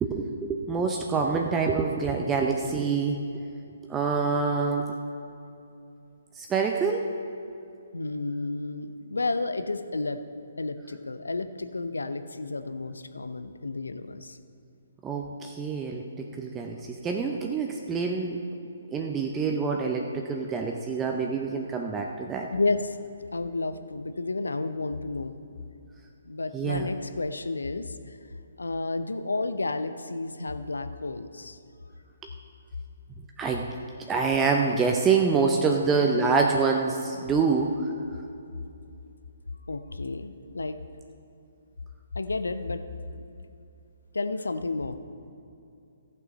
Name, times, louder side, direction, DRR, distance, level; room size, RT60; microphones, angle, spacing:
voice 1, 0.0-3.2 3.9-5.0 6.4-7.1 15.0-18.4 18.9-22.5 26.5-26.9 33.4-33.7 34.1-37.7, right 5 dB, 15° right, 2 dB, 0.6 m, -26 dB
voice 2, 7.9-10.2 10.6-14.4 22.5-23.0 23.3-25.4 26.3-28.2 28.6-31.6 39.7-40.8 42.1-42.8 43.1-43.2 44.1-45.0, left 3 dB, 75° left, 10 dB, 0.7 m, -31 dB
15.0 x 7.1 x 5.3 m, 2.6 s
figure-of-eight pair, 130°, 0 cm